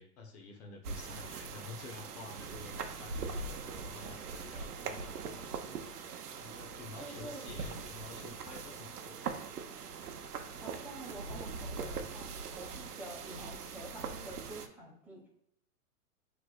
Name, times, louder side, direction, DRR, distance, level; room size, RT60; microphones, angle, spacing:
voice 1, 0.0-5.5 6.4-9.3, left 4 dB, 45° left, 2 dB, 0.9 m, -50 dB
sound 1, 0.8-14.7, right 5 dB, 85° right, 0.8 m, -42 dB
voice 2, 5.2-5.5 7.0-7.6 10.5-15.3, right 2 dB, 5° right, -4 dB, 1.1 m, -48 dB
5.8 x 3.2 x 2.3 m, 0.74 s
hypercardioid pair, 125°, 45 cm